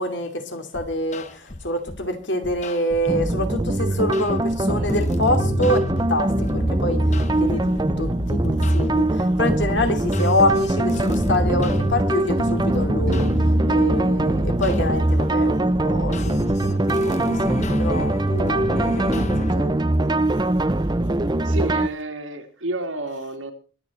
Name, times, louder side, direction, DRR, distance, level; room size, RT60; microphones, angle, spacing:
voice 1, 0.0-5.8 6.1-7.0 7.4-13.3 13.7-19.8, left 1 dB, 65° left, 2.8 m, -26 dB
sound 1, 0.7-2.0 2.4-3.1 3.7-19.5, left 1 dB, 35° left, 1.2 m, -31 dB
sound 2, 3.1-21.9, right 1 dB, 20° right, 0.7 m, -22 dB
voice 2, 3.9-4.3 21.4-23.5, right 1 dB, 85° right, 2.9 m, -30 dB
sound 3, 13.1-17.4, right 1 dB, 45° right, 1.2 m, -37 dB
23.0 x 8.8 x 4.3 m
head